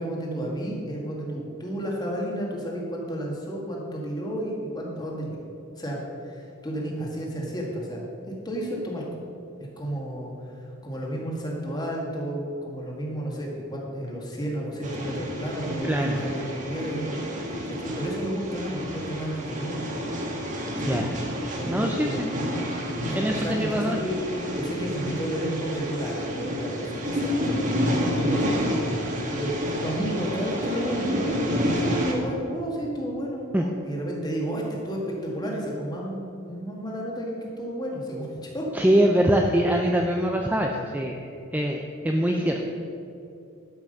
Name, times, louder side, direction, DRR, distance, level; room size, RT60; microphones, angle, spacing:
voice 1, 0.0-5.4 5.8-9.2 9.8-19.8 20.7-21.1 21.6-22.5 23.1-24.2 24.5-28.5 29.3-31.4 31.8-38.3 38.5-38.7 42.3-42.5, right 1 dB, 20° left, -2 dB, 1.9 m, -32 dB
sound 1, 14.8-32.1, equal, 35° right, 1.5 m, -29 dB
voice 2, 15.8-16.3 20.9-21.1 21.6-22.6 23.1-24.0 33.5-33.6 38.7-42.7, right 1 dB, 5° right, 1 dB, 0.5 m, -24 dB
12.0 x 6.0 x 6.7 m, 2.7 s
head